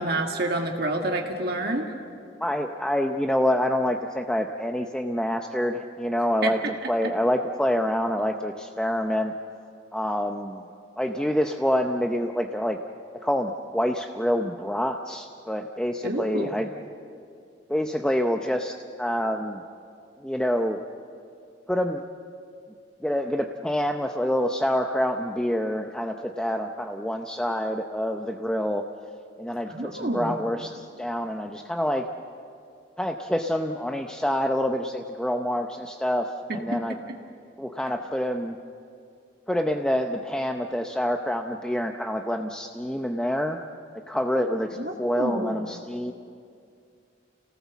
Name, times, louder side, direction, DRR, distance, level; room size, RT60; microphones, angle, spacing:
voice 1, 0.0-1.9 6.4-6.5 7.0-7.1 16.0-16.5 29.7-30.4 36.5-37.0 44.8-45.6, right 1 dB, 60° right, 2 dB, 1.7 m, -28 dB
voice 2, 2.4-6.6 6.9-9.3 9.9-10.6 11.0-12.8 13.1-16.7 17.7-19.6 20.2-20.8 21.7-22.0 23.0-28.8 29.4-32.1 33.0-37.0 37.6-38.6 39.5-43.6 44.1-46.1, equal, 5° left, 4 dB, 0.6 m, -27 dB
28.5 x 18.5 x 7.2 m, 2.4 s
head